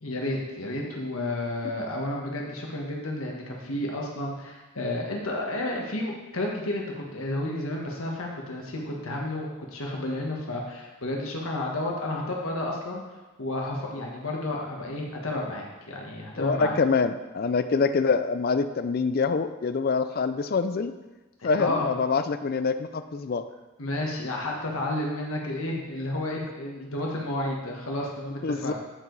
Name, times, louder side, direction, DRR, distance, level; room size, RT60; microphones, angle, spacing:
voice 1, 0.0-13.0 13.4-16.8 21.6-21.9 23.8-28.7, left 1 dB, 75° left, -1 dB, 1.5 m, -31 dB
voice 2, 16.4-20.9 21.4-23.5 28.4-28.7, left 4 dB, 45° left, 11 dB, 0.4 m, -25 dB
13.0 x 4.8 x 4.0 m, 1.2 s
head